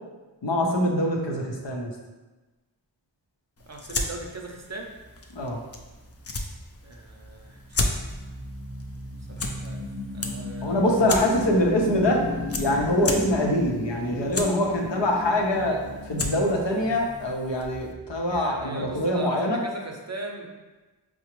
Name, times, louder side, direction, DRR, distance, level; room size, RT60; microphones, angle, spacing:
voice 1, 0.4-1.9 5.3-5.6 10.6-12.2 12.6-15.8 16.0-19.6, left 1 dB, 75° left, 0 dB, 0.7 m, -24 dB
sound 1, 3.6-17.9, left 2 dB, 35° left, 0.4 m, -35 dB
voice 2, 3.7-4.9 6.8-8.2 9.1-9.8 10.1-11.3 18.3-20.5, right 2 dB, 40° right, 1 dB, 0.5 m, -39 dB
sound 2, 5.0-19.1, left 2 dB, 5° left, 0.7 m, -37 dB
4.7 x 2.1 x 3.0 m, 1.2 s
wide cardioid pair, 40°, 43 cm